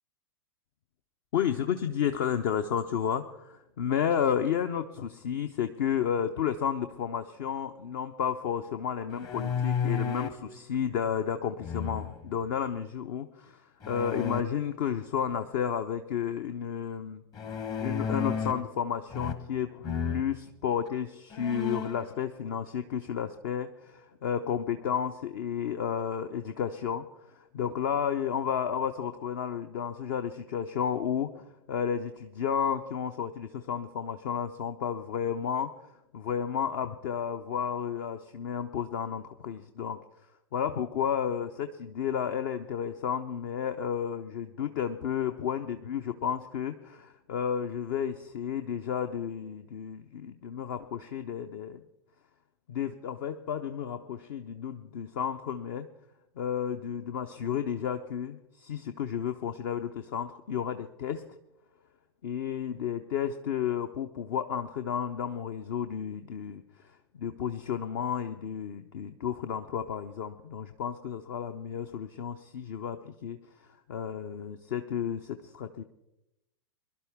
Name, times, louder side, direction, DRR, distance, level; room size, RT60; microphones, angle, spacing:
voice 1, 1.3-17.2 17.8-35.9 36.1-40.0 40.5-51.8 52.7-55.9 56.4-61.2 62.2-73.4 73.9-75.8, left 8 dB, 50° left, 8 dB, 0.7 m, -32 dB
sound 1, 9.1-10.4 11.6-12.3 13.8-14.4 17.3-18.7 19.1-19.6 19.8-20.3 20.9-21.0 21.3-22.1, left 6 dB, 30° left, 1.1 m, -33 dB
22.0 x 11.5 x 3.5 m, 0.89 s
figure-of-eight pair, 100°, 14 cm